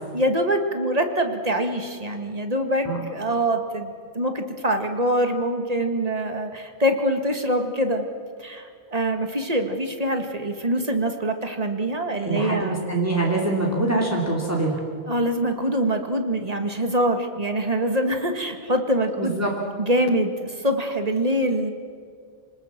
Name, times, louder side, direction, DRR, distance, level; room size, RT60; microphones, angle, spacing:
voice 1, 0.1-8.1 8.4-12.8 15.1-19.4 19.8-21.7, right 1 dB, 35° right, 6 dB, 2.0 m, -24 dB
voice 2, 12.2-14.8 19.2-19.5, right 2 dB, 15° right, -2 dB, 3.0 m, -24 dB
26.5 x 19.5 x 7.4 m, 2.1 s
omnidirectional pair, 1.1 m